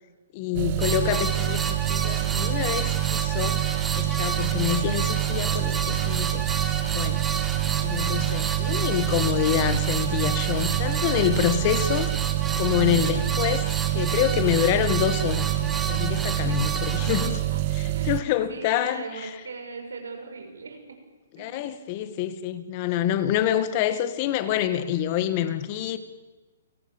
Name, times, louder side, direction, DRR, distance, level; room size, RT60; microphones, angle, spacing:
voice 1, 0.3-3.6 4.0-6.5 6.9-7.3 7.8-12.1 12.6-17.4 17.7-19.3 21.4-26.0, left 11 dB, 35° left, 2.0 m, -27 dB
sound 1, 0.5-18.2, right 16 dB, 35° right, 1.0 m, -26 dB
sound 2, 0.8-17.3, right 4 dB, 10° right, 2.2 m, -32 dB
voice 2, 16.4-16.8 17.5-17.6 17.9-18.2 18.5-21.0 21.4-21.6, right 4 dB, 90° right, 6.6 m, -39 dB
30.0 x 18.5 x 7.4 m
hypercardioid pair, 150°, 0 cm